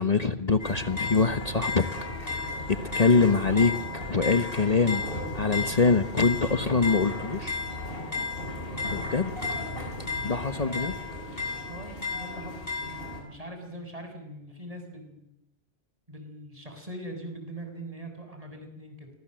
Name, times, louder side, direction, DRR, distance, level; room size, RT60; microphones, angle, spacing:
voice 1, 0.0-1.8 2.2-2.4 2.9-7.6 8.8-9.5 10.2-10.9, left 4 dB, 40° left, 9 dB, 1.2 m, -24 dB
sound 1, 0.6-13.2, left 3 dB, 65° left, 8.3 m, -33 dB
voice 2, 11.7-15.3 16.1-19.1, right 1 dB, 35° right, 5 dB, 6.6 m, -42 dB
30.0 x 25.5 x 7.7 m, 0.86 s
omnidirectional pair, 1.0 m